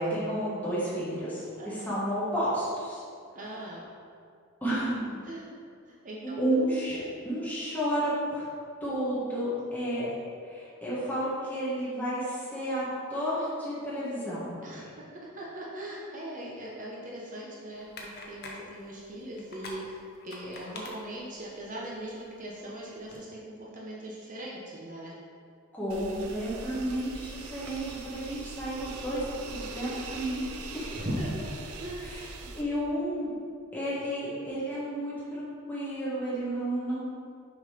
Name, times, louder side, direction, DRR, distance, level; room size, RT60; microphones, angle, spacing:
voice 1, 0.0-3.0 4.6-5.2 6.2-8.4 8.8-10.1 10.4-14.5 25.7-30.4 30.7-31.0 32.0-32.2 32.5-33.3 33.7-37.0, right 1 dB, 10° left, -10 dB, 1.5 m, -31 dB
voice 2, 3.3-3.8 5.2-5.5 5.8-6.4 6.9-7.1 14.6-15.1 15.3-25.2 30.9-31.5 31.8-32.1, right 1 dB, 35° right, -4 dB, 0.9 m, -39 dB
sound 1, 17.7-23.2, left 2 dB, 50° left, 0.9 m, -47 dB
sound 2, 25.9-32.6, right 3 dB, 80° right, 0.6 m, -42 dB
6.4 x 3.8 x 5.1 m, 2.3 s
head